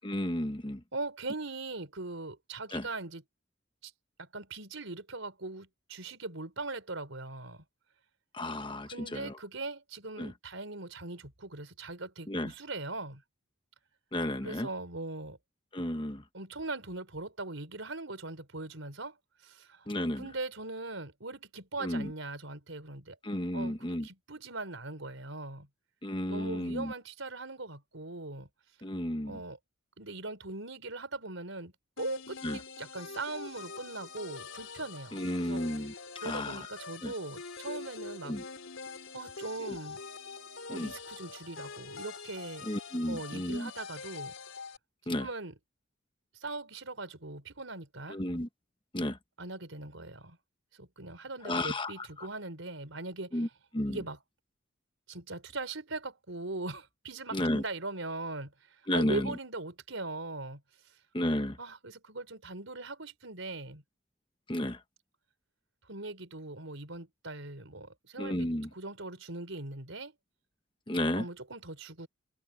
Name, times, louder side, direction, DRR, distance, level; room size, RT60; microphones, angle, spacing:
voice 1, 0.0-0.8 2.7-2.8 8.3-9.4 10.2-10.3 12.3-12.5 14.1-14.7 15.7-16.2 19.9-20.2 21.8-22.1 23.2-24.1 26.0-26.9 28.8-29.4 32.4-32.6 35.1-35.9 36.2-36.6 37.0-37.1 38.2-38.4 40.7-40.9 42.7-43.7 45.1-45.3 48.1-48.5 48.9-49.2 51.4-52.3 53.3-53.5 53.7-54.0 57.3-57.6 58.9-59.3 61.1-61.6 64.5-64.8 68.2-68.7 70.9-71.2, left 1 dB, 25° left, 1.1 m, -32 dB
voice 2, 0.9-3.2 3.8-3.9 4.2-7.6 8.8-13.2 14.4-15.4 16.3-19.2 19.4-19.9 20.1-23.2 23.5-25.7 26.3-28.5 29.2-29.6 30.0-31.7 32.0-35.8 36.2-38.4 39.1-40.0 40.7-42.7 43.1-44.3 45.1-45.5 46.4-48.2 49.4-50.4 50.7-53.5 53.9-54.2 55.1-60.6 61.6-63.8 65.9-70.1 71.1-72.1, right 2 dB, 80° right, 4.2 m, -40 dB
sound 1, 32.0-44.8, left 4 dB, 80° left, 3.4 m, -44 dB
head